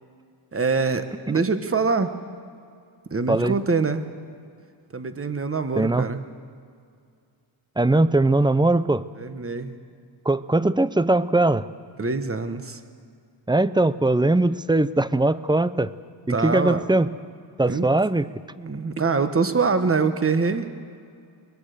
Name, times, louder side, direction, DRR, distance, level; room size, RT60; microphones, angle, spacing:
voice 1, 0.5-2.1 3.1-4.0 4.9-6.2 9.2-9.8 12.0-12.8 16.3-16.8 17.7-17.9 18.6-20.7, right 4 dB, 30° right, 9 dB, 1.3 m, -24 dB
voice 2, 5.8-6.1 7.8-9.0 10.3-11.7 13.5-15.9 16.3-17.1 17.6-18.3, right 2 dB, 10° right, 15 dB, 0.5 m, -20 dB
22.5 x 21.5 x 6.8 m, 2.3 s
wide cardioid pair, 110°, 45 cm